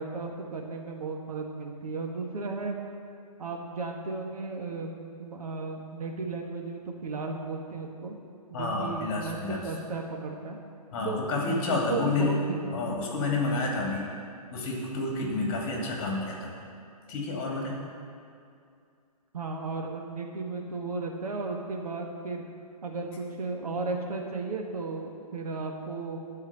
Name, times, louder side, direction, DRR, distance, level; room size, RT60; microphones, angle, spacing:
voice 1, 0.0-2.7 3.4-4.9 5.2-8.1 8.5-10.6 11.0-11.4 11.7-13.0 19.3-22.4 22.8-26.2, right 3 dB, 65° right, 1 dB, 1.7 m, -34 dB
voice 2, 8.5-9.7 10.9-12.4 12.7-14.1 14.5-16.6 17.1-17.8, left 3 dB, 35° left, -2 dB, 2.7 m, -29 dB
11.5 x 4.8 x 8.2 m, 2.4 s
hypercardioid pair, 135°, 20 cm